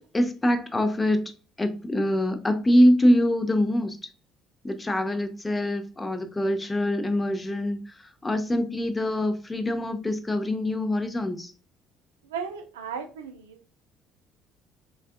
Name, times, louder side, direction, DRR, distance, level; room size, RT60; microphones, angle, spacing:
voice 1, 0.1-1.3 1.6-4.0 4.6-7.8 8.2-11.5, left 1 dB, 20° left, 0.5 m, -24 dB
voice 2, 12.2-13.6, right 6 dB, 80° right, 0.4 m, -35 dB
3.4 x 2.3 x 2.4 m
figure-of-eight pair, 55°, 0 cm